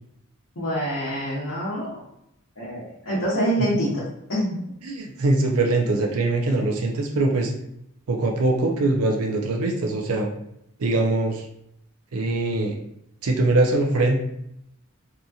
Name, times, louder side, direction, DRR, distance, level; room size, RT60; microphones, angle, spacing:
voice 1, 0.6-2.0 2.6-4.0 4.3-4.6, equal, 70° left, -9 dB, 0.8 m, -26 dB
voice 2, 4.8-7.5 8.1-10.3 10.8-11.5 12.1-12.8 13.2-14.2, right 2 dB, 90° right, 1 dB, 0.5 m, -22 dB
2.8 x 2.6 x 2.3 m, 0.78 s
head